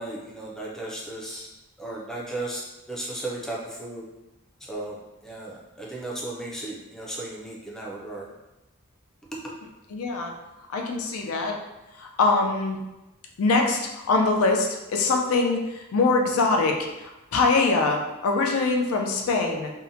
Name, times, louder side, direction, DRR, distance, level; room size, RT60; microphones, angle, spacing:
voice 1, 0.0-1.5 1.8-2.6 2.9-4.1 4.7-8.3 9.4-9.5, right 2 dB, ahead, -4 dB, 0.3 m, -35 dB
voice 2, 9.9-10.3 10.7-11.6 12.0-12.8 13.4-19.7, left 3 dB, 85° left, 2 dB, 0.4 m, -23 dB
2.7 x 2.1 x 2.6 m, 0.99 s
head